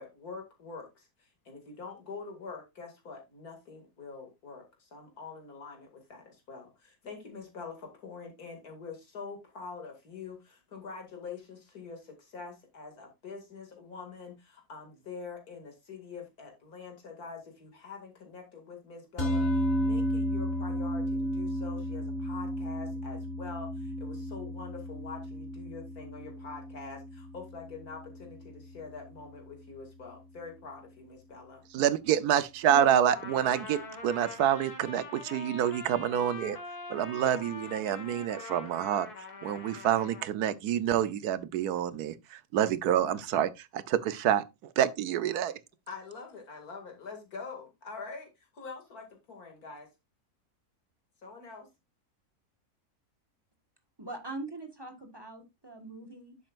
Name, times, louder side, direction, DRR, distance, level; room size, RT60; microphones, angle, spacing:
voice 1, 0.0-19.5 19.8-31.6 32.7-33.2 45.9-49.9 51.2-51.7, left 4 dB, 75° left, 2.8 m, -45 dB
sound 1, 19.2-29.6, equal, 40° left, 2.4 m, -33 dB
voice 2, 31.7-36.6 36.9-39.1 39.4-44.4 44.8-45.5, right 10 dB, 85° right, 1.3 m, -27 dB
Trumpet, 33.1-40.3, left 3 dB, 90° left, 2.4 m, -44 dB
voice 3, 54.0-56.4, right 2 dB, 15° right, 1.4 m, -42 dB
9.9 x 7.6 x 2.5 m
omnidirectional pair, 1.6 m